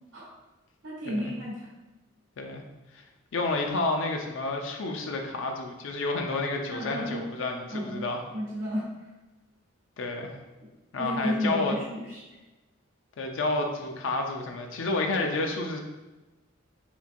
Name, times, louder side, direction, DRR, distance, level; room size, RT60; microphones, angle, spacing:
voice 1, 0.8-1.7 6.7-7.2 7.7-8.1 8.3-8.8 11.0-12.2, equal, 90° right, -7 dB, 0.9 m, -32 dB
voice 2, 3.3-8.2 10.0-10.4 10.9-11.8 13.2-15.8, left 3 dB, 70° left, 3 dB, 0.4 m, -30 dB
3.6 x 2.5 x 2.6 m, 1.1 s
head